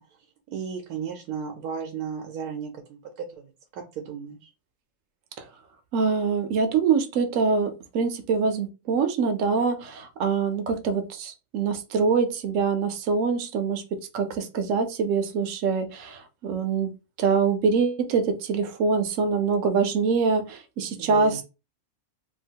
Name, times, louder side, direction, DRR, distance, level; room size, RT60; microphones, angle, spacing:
voice 1, 0.5-4.5 21.0-21.4, right 7 dB, 85° right, 3 dB, 1.1 m, -35 dB
voice 2, 5.9-16.9 17.2-21.4, right 5 dB, 65° right, 7 dB, 0.9 m, -24 dB
2.9 x 2.4 x 2.7 m, 0.29 s
omnidirectional pair, 1.6 m